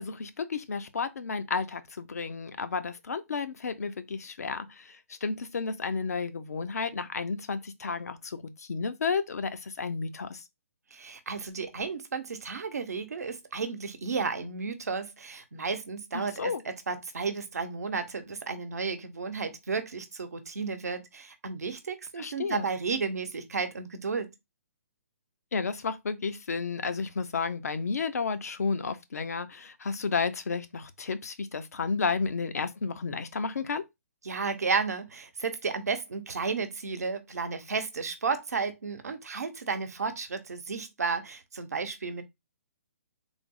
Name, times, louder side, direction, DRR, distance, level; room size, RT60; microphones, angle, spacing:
voice 1, 0.0-10.4 16.1-16.6 22.2-22.7 25.5-33.8, left 5 dB, 80° left, 0.6 m, -32 dB
voice 2, 10.9-24.3 34.2-42.2, right 5 dB, 85° right, 0.8 m, -33 dB
3.4 x 2.0 x 3.7 m
hypercardioid pair, 145°, 8 cm